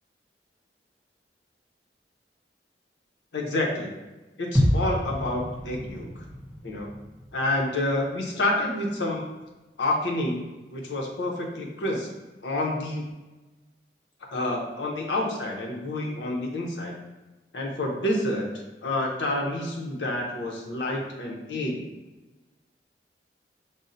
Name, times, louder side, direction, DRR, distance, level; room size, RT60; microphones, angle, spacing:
voice 1, 3.3-3.9 4.4-6.3 6.6-6.9 7.3-9.3 9.8-10.4 10.7-12.1 12.4-13.0 14.3-17.0 17.5-21.8, left 1 dB, 90° left, 0 dB, 0.7 m, -28 dB
sound 1, 4.5-8.5 8.8-8.9, equal, 10° right, 0.5 m, -29 dB
5.2 x 2.1 x 2.6 m, 1.1 s
head